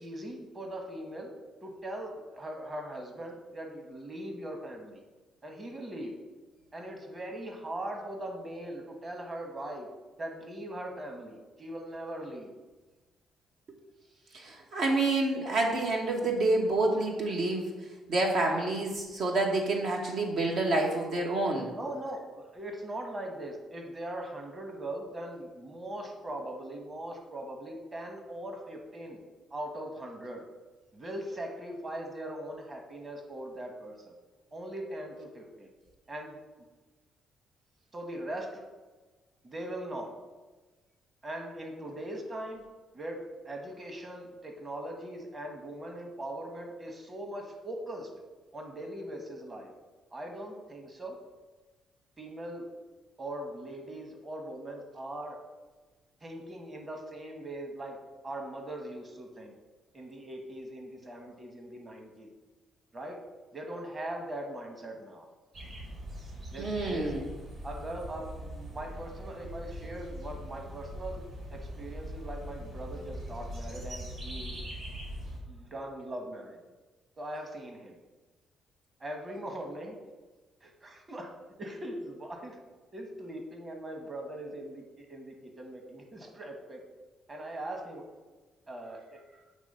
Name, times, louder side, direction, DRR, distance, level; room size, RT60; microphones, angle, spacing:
voice 1, 0.0-1.3 1.6-5.0 5.4-6.1 6.7-9.9 10.2-12.5 21.7-29.2 29.5-30.4 30.9-34.1 34.5-35.7 36.1-36.4 37.9-38.6 39.4-40.1 41.2-42.6 42.9-48.1 48.5-49.7 50.1-51.2 52.2-52.7 53.2-55.4 56.2-58.0 58.2-59.5 59.9-62.3 62.9-63.2 63.5-65.3 66.5-67.1 67.6-71.2 71.5-74.6 75.5-76.6 77.2-78.0 79.0-80.0 80.6-81.3 81.6-82.6 82.9-86.8 87.3-88.0 88.7-89.2, right 1 dB, 30° right, 2 dB, 1.3 m, -40 dB
voice 2, 14.3-17.7 18.1-21.7 66.6-67.2, right 2 dB, 70° right, 0 dB, 1.1 m, -28 dB
sound 1, 65.5-75.4, equal, 55° right, 2.1 m, -41 dB
8.3 x 3.2 x 5.4 m, 1.2 s
cardioid pair, 90°, 0 cm